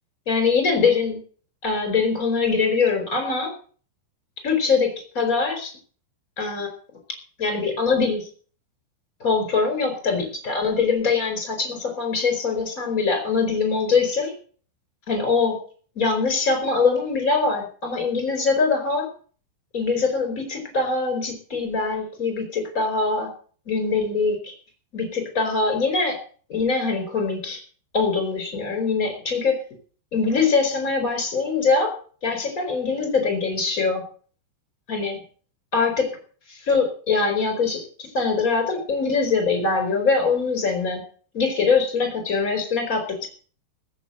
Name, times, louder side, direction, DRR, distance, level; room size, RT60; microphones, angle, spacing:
voice 1, 0.3-1.2 1.6-3.5 4.4-5.7 6.4-6.7 7.4-8.3 9.2-14.3 15.1-15.6 15.9-19.1 19.7-23.3 23.7-24.5 24.9-26.2 26.5-27.6 27.9-29.6 30.1-31.9 32.2-34.0 34.9-35.2 35.7-36.1 36.5-41.0 41.3-43.3, left 4 dB, 15° left, 5 dB, 4.3 m, -23 dB
15.5 x 8.1 x 7.9 m, 0.43 s
omnidirectional pair, 6.0 m